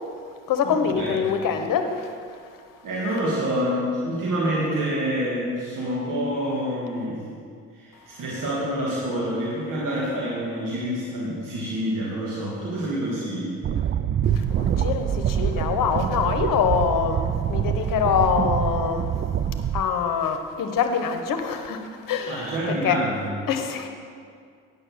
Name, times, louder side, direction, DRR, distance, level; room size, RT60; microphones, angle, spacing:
voice 1, 0.0-2.5 7.9-8.2 14.3-19.2 19.5-23.0 23.5-23.9, left 7 dB, 60° left, 7 dB, 1.0 m, -25 dB
voice 2, 0.6-1.3 2.8-7.2 7.7-13.6 22.3-23.3, equal, 60° right, -6 dB, 2.2 m, -27 dB
sound 1, 13.6-19.8, right 9 dB, 30° right, 0.4 m, -25 dB
9.1 x 6.4 x 6.4 m, 2.2 s
hypercardioid pair, 50°, 36 cm